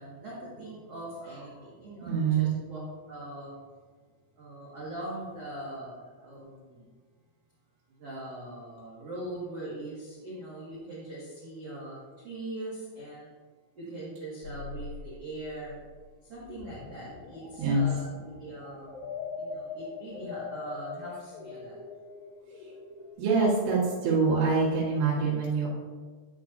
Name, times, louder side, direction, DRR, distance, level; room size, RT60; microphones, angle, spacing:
voice 1, 0.0-2.8 3.1-3.5 4.4-6.9 8.0-13.3 13.8-15.8 16.3-19.0 19.4-21.8, right 1 dB, 50° right, -8 dB, 2.0 m, -41 dB
voice 2, 2.0-2.6 17.6-17.9 22.6-22.7 23.2-25.7, right 4 dB, 80° right, -9 dB, 4.6 m, -25 dB
sound 1, 14.4-23.1, left 4 dB, 85° left, 3.2 m, -42 dB
13.0 x 8.2 x 2.8 m, 1.5 s
omnidirectional pair, 5.7 m